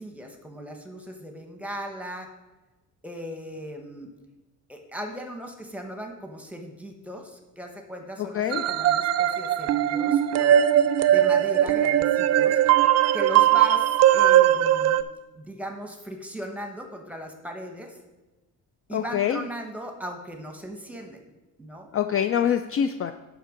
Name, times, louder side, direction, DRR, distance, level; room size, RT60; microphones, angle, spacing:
voice 1, 0.0-2.3 3.0-4.1 4.7-10.6 11.1-12.6 13.1-15.0 15.3-18.0 18.9-21.2 21.6-21.9, equal, 5° right, 3 dB, 1.2 m, -38 dB
sound 1, 8.5-15.0, right 11 dB, 50° right, 0.5 m, -20 dB
voice 2, 18.9-19.4 21.9-23.1, left 9 dB, 40° left, 9 dB, 0.4 m, -25 dB
9.1 x 6.1 x 5.0 m, 1.1 s
cardioid pair, 150°, 34 cm